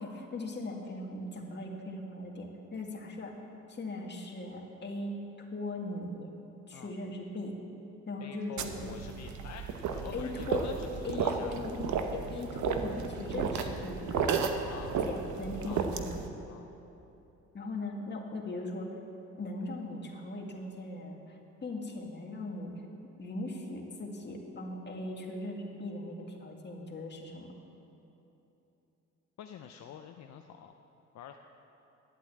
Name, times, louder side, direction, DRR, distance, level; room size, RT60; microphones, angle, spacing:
voice 1, 0.0-3.3 3.7-5.2 5.5-6.3 6.7-7.6 8.1-8.9 10.1-10.7 11.0-11.8 12.1-14.4 15.0-16.2 17.5-19.0 19.4-22.7 23.2-27.5, left 2 dB, 35° left, 0 dB, 2.0 m, -39 dB
voice 2, 8.2-11.5 14.7-14.9 15.6-15.8 16.5-16.7 29.4-30.8 31.1-31.4, left 8 dB, 65° left, 5 dB, 0.7 m, -47 dB
sound 1, 8.6-16.3, right 6 dB, 75° right, 1.0 m, -33 dB
11.0 x 8.2 x 8.5 m, 3.0 s
cardioid pair, 90°, 30 cm